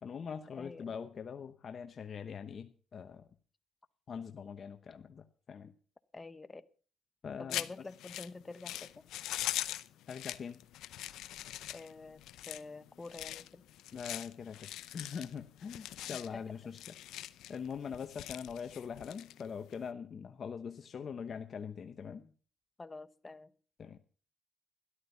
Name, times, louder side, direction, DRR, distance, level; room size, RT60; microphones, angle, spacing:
voice 1, 0.0-3.3 4.1-5.7 7.2-7.6 10.1-10.6 13.9-16.8 17.5-22.2 23.8-24.0, left 6 dB, 50° left, 0.9 m, -43 dB
voice 2, 0.6-0.9 6.1-6.7 7.4-9.0 11.7-13.7 16.1-16.4 22.0-22.3 22.8-23.5, left 3 dB, 25° left, 0.9 m, -48 dB
sound 1, 7.5-19.9, left 13 dB, 85° left, 0.6 m, -42 dB
13.0 x 11.5 x 5.7 m
cardioid pair, 90°, 0 cm